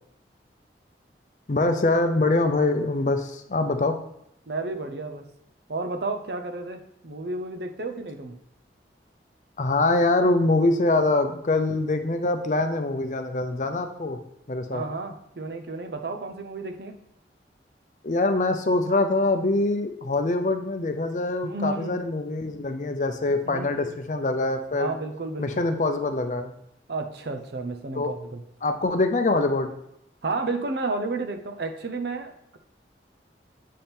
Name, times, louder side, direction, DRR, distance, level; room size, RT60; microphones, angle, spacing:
voice 1, 1.5-4.0 9.6-14.2 14.5-14.8 18.0-24.9 25.4-26.5 28.0-28.1 28.6-29.7, left 2 dB, 45° left, 7 dB, 0.5 m, -24 dB
voice 2, 4.5-5.3 5.7-8.4 14.7-17.0 21.4-22.0 23.5-24.0 24.7-25.6 26.9-28.4 30.2-32.6, right 3 dB, 65° right, 6 dB, 0.7 m, -32 dB
7.4 x 3.5 x 4.3 m, 0.77 s
head